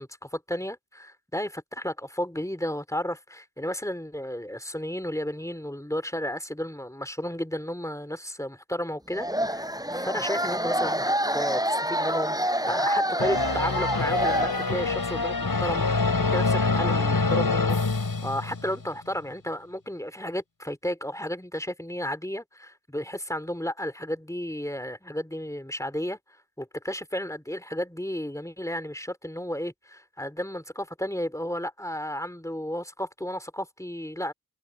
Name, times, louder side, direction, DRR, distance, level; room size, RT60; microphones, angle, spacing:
voice 1, 0.0-11.0 11.3-17.8 18.2-34.3, equal, 10° left, 2.9 m, -33 dB
sound 1, 9.1-15.0, equal, 10° right, 7.1 m, -27 dB
sound 2, 13.2-18.8, left 3 dB, 65° left, 3.9 m, -25 dB
wide cardioid pair, 50°, 38 cm